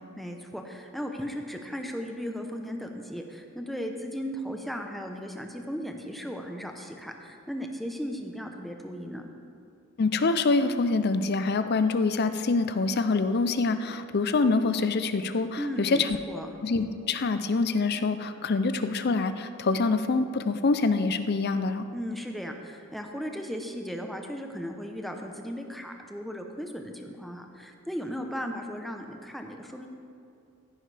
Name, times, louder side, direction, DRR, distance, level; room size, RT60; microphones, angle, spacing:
voice 1, 0.1-9.3 15.6-16.5 21.9-29.9, equal, ahead, 3 dB, 0.8 m, -36 dB
voice 2, 10.0-16.2 16.6-21.9, left 3 dB, 50° left, 10 dB, 0.5 m, -25 dB
15.0 x 9.9 x 3.4 m, 2.5 s
head